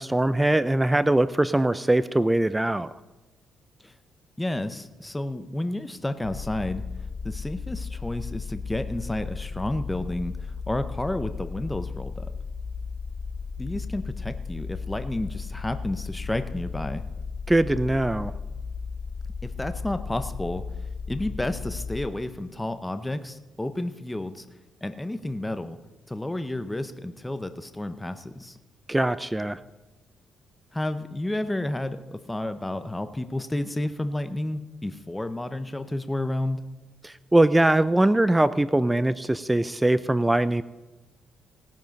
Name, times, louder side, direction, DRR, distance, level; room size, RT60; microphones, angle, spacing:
voice 1, 0.0-2.9 17.5-18.3 28.9-29.6 37.0-40.6, right 1 dB, 10° right, 15 dB, 0.4 m, -22 dB
voice 2, 4.4-6.8 7.2-12.3 13.6-17.1 19.4-20.7 21.1-24.5 24.8-25.8 26.1-28.6 30.7-36.6, left 1 dB, 10° left, 10 dB, 0.7 m, -31 dB
sound 1, 6.2-22.1, left 5 dB, 70° left, 1.4 m, -35 dB
18.0 x 7.4 x 5.3 m, 1.1 s
cardioid pair, 90°, 0 cm